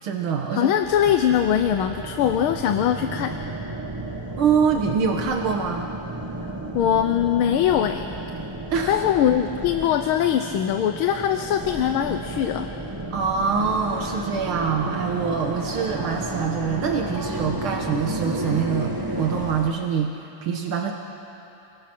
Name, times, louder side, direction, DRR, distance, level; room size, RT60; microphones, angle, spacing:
voice 1, 0.0-0.8 4.4-5.9 8.7-9.0 13.1-20.1 20.4-20.9, right 6 dB, 80° right, 2 dB, 2.1 m, -24 dB
voice 2, 0.5-3.3 6.4-8.0 8.9-12.7, left 9 dB, 85° left, 7 dB, 1.6 m, -22 dB
sound 1, 0.8-19.7, right 2 dB, 15° right, 0.7 m, -32 dB
29.0 x 22.0 x 6.1 m, 2.9 s
omnidirectional pair, 2.3 m